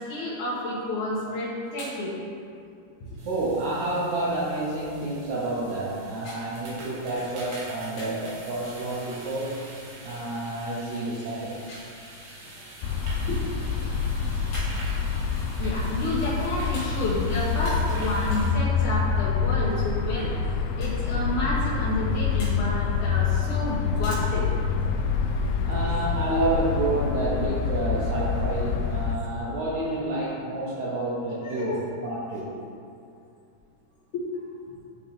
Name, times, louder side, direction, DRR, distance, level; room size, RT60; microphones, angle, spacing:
voice 1, 0.0-2.2 3.0-3.1 6.2-6.4 8.0-8.1 11.7-11.8 13.3-13.4 14.5-14.7 15.6-24.5 31.4-31.8 34.1-34.3, left 1 dB, 65° left, -9 dB, 2.1 m, -30 dB
sound 1, 3.2-18.5, right 1 dB, 60° right, 2.5 m, -44 dB
voice 2, 3.2-9.6 10.0-11.6 25.6-32.5, right 2 dB, 75° right, -6 dB, 1.7 m, -29 dB
sound 2, 12.8-29.2, left 5 dB, 90° left, 2.5 m, -26 dB
10.5 x 3.7 x 3.4 m, 2.5 s
omnidirectional pair, 4.3 m